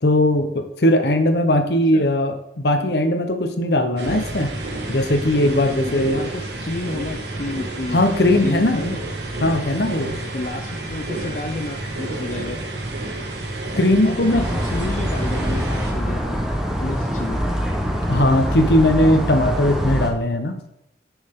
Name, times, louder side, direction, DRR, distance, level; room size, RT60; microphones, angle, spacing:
voice 1, 0.0-4.5 4.9-6.2 7.9-8.8 9.4-10.1 13.7-14.4 18.1-20.6, left 1 dB, 65° left, 7 dB, 0.9 m, -19 dB
sound 1, 4.0-15.9, right 2 dB, 70° right, 1.5 m, -30 dB
voice 2, 5.8-8.0 8.4-9.0 10.3-12.6 14.0-16.4 16.8-17.5, left 2 dB, 45° left, 4 dB, 0.5 m, -31 dB
sound 2, 14.3-20.1, equal, 5° right, 1.1 m, -24 dB
9.7 x 6.4 x 3.7 m, 0.83 s
head